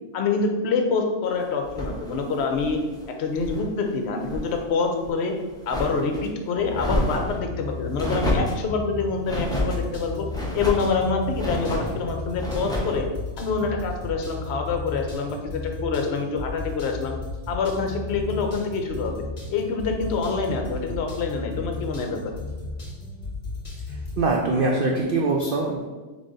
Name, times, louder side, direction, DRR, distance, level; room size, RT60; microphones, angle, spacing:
voice 1, 0.1-2.8 3.2-5.3 5.7-10.3 10.5-13.1 13.4-17.1 17.5-19.2 19.5-22.2, left 4 dB, 60° left, 3 dB, 0.8 m, -26 dB
sound 1, 1.6-3.7 4.0-4.6 5.0-6.3 6.7-7.4 8.0-8.6 9.2-9.8 10.3-10.9 11.3-12.0 12.4-13.0, left 1 dB, 5° left, 0.4 m, -29 dB
sound 2, 6.6-24.3, left 3 dB, 30° left, 1.0 m, -35 dB
voice 2, 24.2-25.8, right 3 dB, 85° right, 0 dB, 0.4 m, -23 dB
3.7 x 3.4 x 3.8 m, 1.2 s
omnidirectional pair, 1.5 m